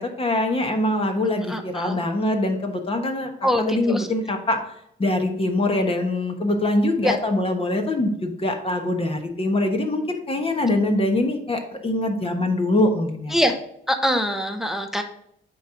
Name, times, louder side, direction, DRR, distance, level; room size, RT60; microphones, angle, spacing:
voice 1, 0.0-3.3 3.6-4.6 5.0-13.3, left 1 dB, 30° left, 4 dB, 1.2 m, -23 dB
voice 2, 1.5-2.0 3.4-4.1 7.0-7.2 13.3-13.6 13.9-15.0, equal, ahead, 6 dB, 0.7 m, -23 dB
9.2 x 3.1 x 5.0 m, 0.74 s
cardioid pair, 90°, 20 cm